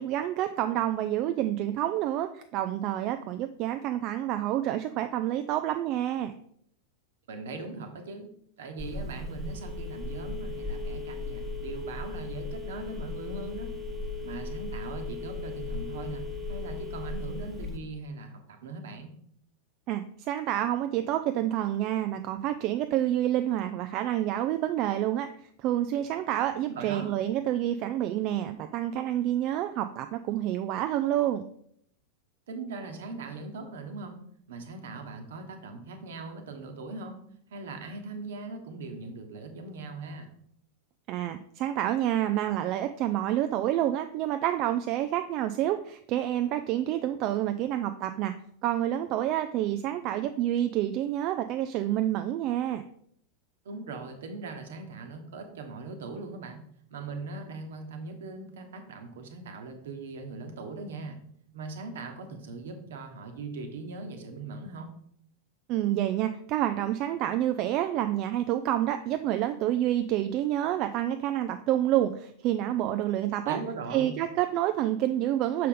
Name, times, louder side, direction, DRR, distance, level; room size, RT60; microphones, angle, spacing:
voice 1, 0.0-6.3 19.9-25.3 25.6-31.4 41.1-48.3 48.6-52.8 65.7-73.6 73.9-75.7, right 12 dB, 40° right, 8 dB, 0.3 m, -28 dB
voice 2, 7.3-8.3 8.6-13.7 14.2-19.1 26.7-27.1 32.5-34.2 34.5-37.2 37.5-40.3 53.6-56.6 56.9-61.2 61.5-64.9 73.5-74.1, right 3 dB, 60° right, 6 dB, 1.1 m, -40 dB
Telephone, 8.8-17.8, left 2 dB, 15° right, 1.1 m, -36 dB
6.5 x 5.2 x 3.7 m, 0.67 s
figure-of-eight pair, 90°, 0 cm